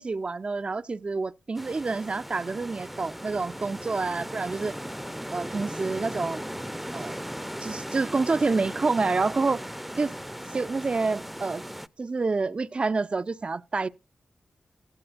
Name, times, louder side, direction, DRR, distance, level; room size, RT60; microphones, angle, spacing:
voice 1, 0.0-4.7 5.3-6.4 6.9-7.2 7.6-9.6 10.0-10.1 10.5-11.6 12.0-13.9, right 3 dB, 45° right, 0.5 m, -28 dB
sound 1, 1.5-11.9, equal, 5° right, 0.6 m, -37 dB
15.5 x 11.0 x 2.5 m
cardioid pair, 45°, 3 cm